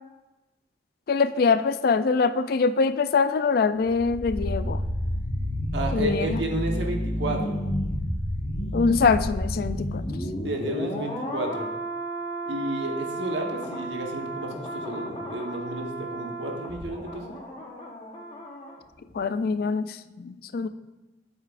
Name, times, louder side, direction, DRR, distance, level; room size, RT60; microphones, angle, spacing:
voice 1, 1.1-4.8 5.9-6.4 8.7-10.0 19.1-20.7, left 4 dB, 55° left, 12 dB, 0.3 m, -24 dB
sound 1, 3.8-18.8 19.0-19.2, equal, 40° left, 1.2 m, -31 dB
voice 2, 5.7-7.6 10.4-11.7 12.4-17.4, right 1 dB, 85° right, 1 dB, 1.2 m, -32 dB
9.0 x 7.9 x 2.5 m, 1.1 s
head